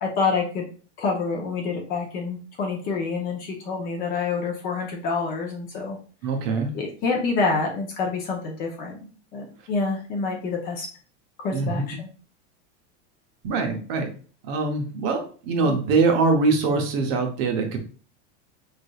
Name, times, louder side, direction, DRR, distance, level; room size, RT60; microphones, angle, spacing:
voice 1, 0.0-0.7 1.0-6.0 6.7-10.9 11.4-12.1 15.6-15.8, left 4 dB, 25° left, 1 dB, 0.6 m, -27 dB
voice 2, 6.2-6.7 11.5-11.8 13.4-14.1 14.4-17.8, right 4 dB, 35° right, 3 dB, 0.7 m, -23 dB
5.1 x 3.4 x 2.2 m, 0.40 s
supercardioid pair, 170°, 36 cm